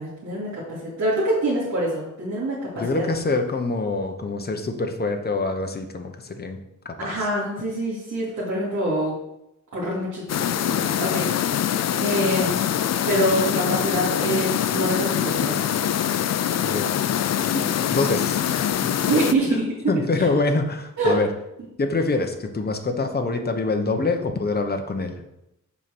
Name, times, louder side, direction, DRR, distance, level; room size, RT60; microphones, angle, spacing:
voice 1, 0.0-3.0 7.0-9.2 9.7-11.6 12.0-12.6 13.1-15.6 19.0-20.2 21.0-21.2, right 1 dB, 65° right, -9 dB, 2.8 m, -25 dB
voice 2, 2.8-6.6 6.8-7.2 16.6-17.0 17.5-18.9 19.5-21.3 21.8-25.2, left 3 dB, 30° left, 5 dB, 1.0 m, -25 dB
sound 1, 10.3-19.3, left 10 dB, 55° left, 0.4 m, -24 dB
7.2 x 5.3 x 6.2 m, 0.87 s
wide cardioid pair, 135°, 32 cm